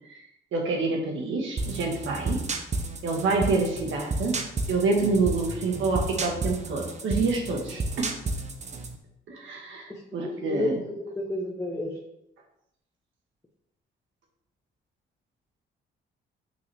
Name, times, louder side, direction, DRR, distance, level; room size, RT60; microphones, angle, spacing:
voice 1, 0.5-2.4 3.0-4.4 4.7-8.1 9.3-10.8, right 3 dB, 75° right, 1 dB, 1.6 m, -27 dB
sound 1, 1.6-9.0, right 2 dB, 35° right, 0.8 m, -32 dB
voice 2, 9.9-11.9, left 1 dB, 15° left, -1 dB, 1.0 m, -31 dB
6.3 x 5.6 x 3.5 m, 0.81 s
cardioid pair, 90°, 20 cm